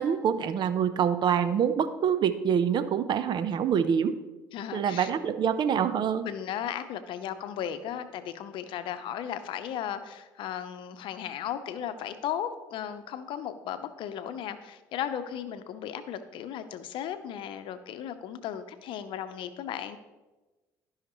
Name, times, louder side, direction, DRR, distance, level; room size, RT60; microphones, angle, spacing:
voice 1, 0.0-4.1 4.7-6.3, right 8 dB, 55° right, 12 dB, 0.7 m, -26 dB
voice 2, 4.5-5.1 6.2-20.0, left 9 dB, 65° left, 10 dB, 0.7 m, -36 dB
14.0 x 5.7 x 3.0 m, 1.2 s
hypercardioid pair, 65°, 9 cm